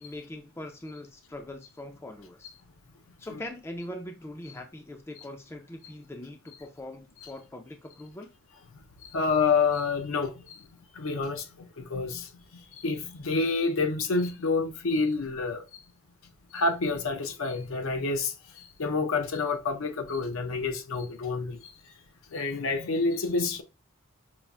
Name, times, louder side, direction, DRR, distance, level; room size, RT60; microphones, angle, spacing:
voice 1, 0.0-2.5 3.2-8.3, left 1 dB, 10° left, 0.3 m, -42 dB
voice 2, 9.1-10.6 11.0-12.3 12.8-15.6 16.5-21.7 22.3-23.6, left 4 dB, 70° left, 0.5 m, -28 dB
5.4 x 2.4 x 2.2 m
head